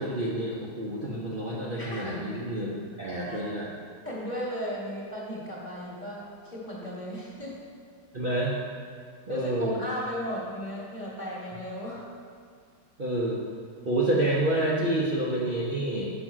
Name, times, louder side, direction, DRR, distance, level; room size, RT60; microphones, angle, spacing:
voice 1, 0.0-3.7 8.1-8.5 9.3-9.8 13.0-13.4 13.9-16.1, right 1 dB, 40° right, -6 dB, 0.8 m, -28 dB
voice 2, 1.8-2.2 3.3-3.4 4.0-7.5 9.3-12.1, equal, 30° left, -5 dB, 1.5 m, -35 dB
6.2 x 5.0 x 6.2 m, 2.1 s
omnidirectional pair, 1.8 m